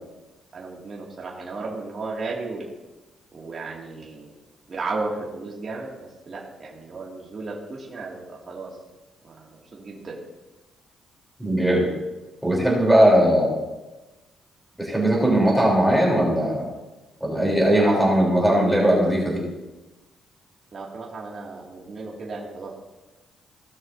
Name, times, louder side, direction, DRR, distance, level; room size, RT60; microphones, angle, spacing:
voice 1, 0.5-2.7 3.3-4.3 4.7-5.9 6.3-8.7 9.2-10.2 12.8-12.9 17.8-18.6 20.7-22.7, right 3 dB, 40° right, -3 dB, 2.2 m, -34 dB
voice 2, 11.4-11.9 12.4-13.5 14.8-16.7 17.2-19.4, right 1 dB, 5° right, -4 dB, 3.4 m, -19 dB
17.5 x 6.3 x 2.7 m, 1.1 s
cardioid pair, 90°, 0 cm